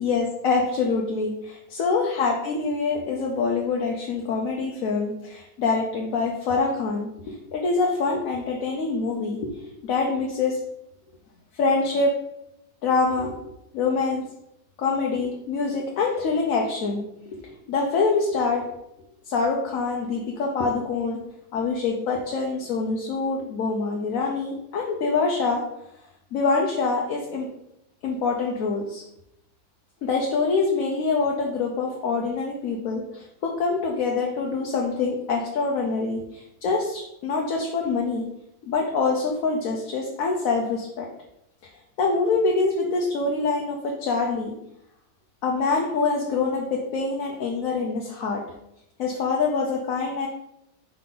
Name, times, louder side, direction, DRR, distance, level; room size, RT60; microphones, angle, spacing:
voice 1, 0.0-9.5 9.8-10.6 11.5-12.2 12.8-13.3 13.7-14.2 14.8-17.0 17.3-18.6 19.3-21.2 21.5-25.6 26.3-27.5 28.0-29.0 30.0-38.3 38.7-41.1 42.0-44.5 45.4-48.4 49.0-50.3, left 4 dB, 65° left, 0 dB, 1.1 m, -25 dB
5.6 x 4.7 x 3.8 m, 0.82 s
omnidirectional pair, 1.6 m